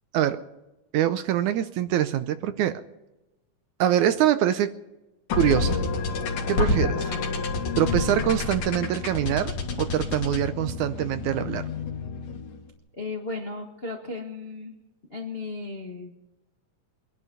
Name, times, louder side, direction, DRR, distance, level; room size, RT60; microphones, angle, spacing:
voice 1, 0.9-2.8 3.8-4.7 5.3-5.8 6.5-7.0 7.8-11.6, right 11 dB, 75° right, 11 dB, 2.0 m, -24 dB
sound 1, 5.3-12.6, left 3 dB, 70° left, 3.3 m, -28 dB
voice 2, 12.9-14.7 15.1-16.2, left 3 dB, 35° left, 1 dB, 0.9 m, -35 dB
23.0 x 11.0 x 5.4 m, 0.97 s
omnidirectional pair, 3.7 m